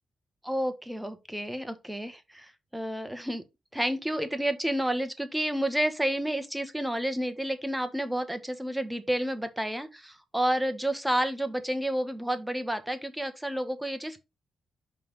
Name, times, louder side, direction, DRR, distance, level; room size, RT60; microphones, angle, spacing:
voice 1, 0.4-3.4 3.7-14.2, right 1 dB, 5° right, 1.4 m, -30 dB
5.6 x 3.6 x 5.4 m
cardioid pair, 70°, 0 cm